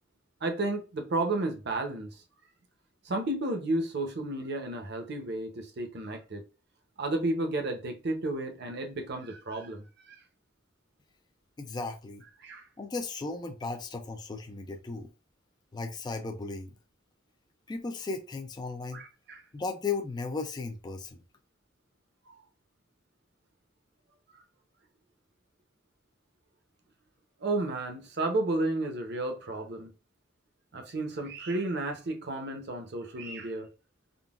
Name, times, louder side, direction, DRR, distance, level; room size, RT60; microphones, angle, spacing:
voice 1, 0.4-2.1 3.0-6.4 7.0-10.2 12.4-12.6 18.9-19.4 22.3-22.4 27.4-29.9 30.7-33.7, right 2 dB, 60° right, 0.7 m, -32 dB
voice 2, 11.6-12.2 12.8-15.1 15.7-16.7 17.7-19.0 19.5-21.2, left 4 dB, 20° left, 0.3 m, -35 dB
3.7 x 2.2 x 2.4 m
head